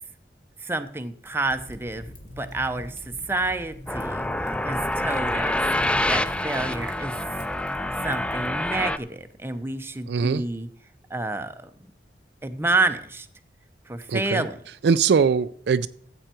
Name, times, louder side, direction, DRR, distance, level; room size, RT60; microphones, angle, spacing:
voice 1, 0.6-5.6 6.1-7.1 8.0-10.7 11.1-11.7 12.4-13.3 13.9-14.5, right 2 dB, 15° right, 0.7 m, -29 dB
Fire, 1.4-8.5, equal, 45° left, 2.0 m, -43 dB
sound 1, 3.9-9.0, left 1 dB, 5° left, 0.3 m, -26 dB
voice 2, 10.1-10.4 14.1-14.5 14.8-15.9, right 5 dB, 65° right, 0.4 m, -21 dB
13.5 x 8.0 x 4.5 m
head